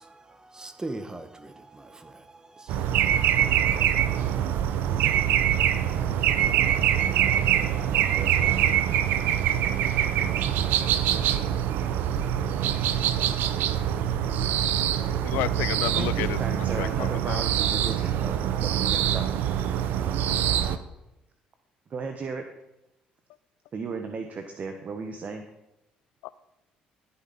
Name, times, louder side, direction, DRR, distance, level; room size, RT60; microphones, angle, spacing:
voice 1, 0.0-5.6 6.1-10.8, right 2 dB, 20° right, 9 dB, 1.4 m, -45 dB
sound 1, 2.7-20.8, right 10 dB, 75° right, 0.8 m, -24 dB
voice 2, 15.2-16.4 16.8-17.4 26.2-26.3, left 17 dB, 85° left, 17 dB, 0.5 m, -31 dB
voice 3, 15.9-19.3 21.9-22.4 23.7-25.4, right 4 dB, 50° right, 6 dB, 1.3 m, -35 dB
14.0 x 8.7 x 4.3 m, 0.94 s
supercardioid pair, 65°, 3 cm